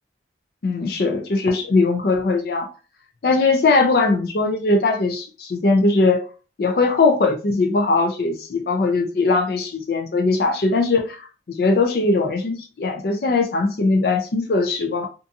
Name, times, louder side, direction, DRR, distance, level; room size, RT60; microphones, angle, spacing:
voice 1, 0.6-2.7 3.2-6.3 6.6-15.1, left 3 dB, 55° left, 4 dB, 0.4 m, -20 dB
2.6 x 2.4 x 2.6 m, 0.35 s
head